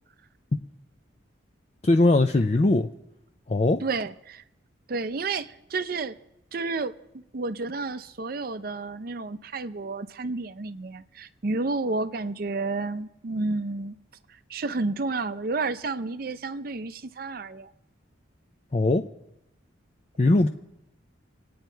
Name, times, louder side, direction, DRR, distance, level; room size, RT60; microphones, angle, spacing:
voice 1, 1.8-2.9 3.5-3.8 18.7-19.0 20.2-20.5, left 2 dB, 35° left, 0.4 m, -20 dB
voice 2, 3.8-4.4 4.9-6.2 6.5-6.9 7.3-14.0 14.5-17.7, right 3 dB, 50° right, 0.5 m, -31 dB
26.5 x 9.4 x 4.5 m
head